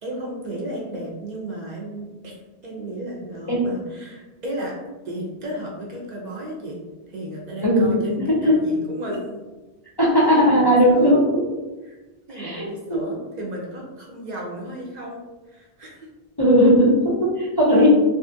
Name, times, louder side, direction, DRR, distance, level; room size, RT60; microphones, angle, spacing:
voice 1, 0.0-2.3 2.6-4.8 5.0-9.4 10.2-11.2 11.8-12.0 12.3-16.1 17.7-17.9, right 1 dB, 55° right, -2 dB, 0.5 m, -33 dB
voice 2, 7.6-7.9 8.3-8.6 10.0-11.2 12.3-13.0 16.4-17.9, equal, 35° left, -7 dB, 0.4 m, -17 dB
2.6 x 2.4 x 2.5 m, 1.2 s
omnidirectional pair, 1.1 m